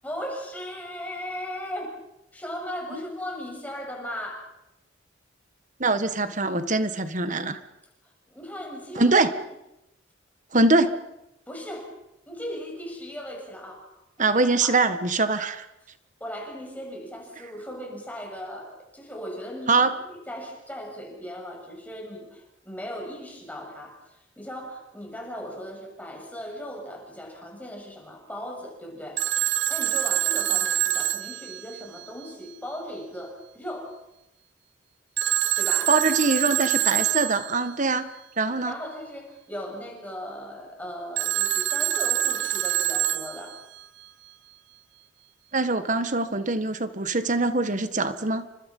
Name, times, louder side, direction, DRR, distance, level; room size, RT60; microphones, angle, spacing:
voice 1, 0.0-1.9 2.3-4.5 8.0-9.2 11.5-12.0 12.3-14.0 14.6-14.8 16.2-29.2 29.7-34.0 35.6-36.0 38.7-43.6, equal, 10° left, 0 dB, 7.2 m, -37 dB
voice 2, 5.8-7.6 9.0-9.3 10.5-10.9 14.2-15.6 19.7-20.0 35.9-38.7 45.5-48.4, right 3 dB, 40° right, 10 dB, 1.6 m, -23 dB
Telephone, 29.2-32.3 35.2-37.7 41.2-43.8, right 12 dB, 60° right, 0.9 m, -25 dB
29.5 x 25.5 x 5.6 m, 0.90 s
head